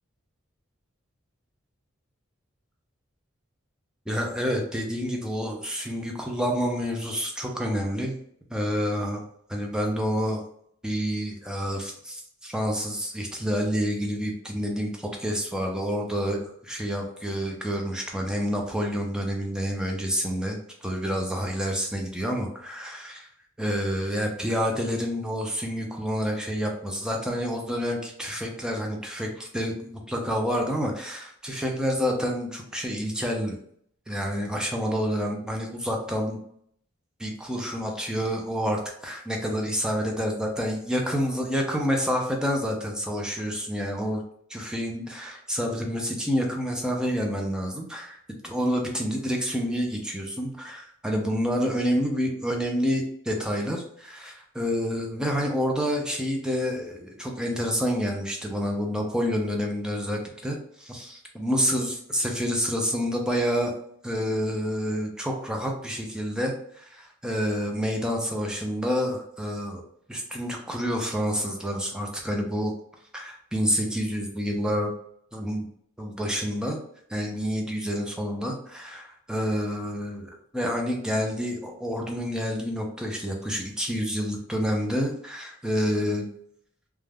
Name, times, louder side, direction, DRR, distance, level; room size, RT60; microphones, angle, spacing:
voice 1, 4.1-8.1 8.5-9.2 9.5-10.4 10.8-23.3 23.6-33.6 34.1-36.4 37.2-44.2 44.5-48.2 48.4-63.7 64.0-69.8 70.1-72.7 73.1-74.9 75.3-75.7 76.0-76.8 77.1-86.3, equal, 5° right, 1 dB, 0.4 m, -28 dB
2.3 x 2.1 x 3.3 m, 0.67 s
head